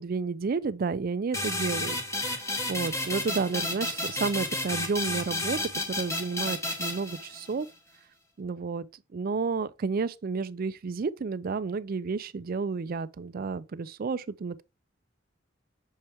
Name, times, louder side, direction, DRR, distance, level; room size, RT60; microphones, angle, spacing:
voice 1, 0.0-5.6 5.9-7.7 8.4-8.9 9.1-14.6, right 4 dB, 50° right, 0.4 m, -31 dB
sound 1, 1.3-7.7, left 2 dB, 15° left, 1.2 m, -32 dB
6.5 x 4.4 x 3.4 m
head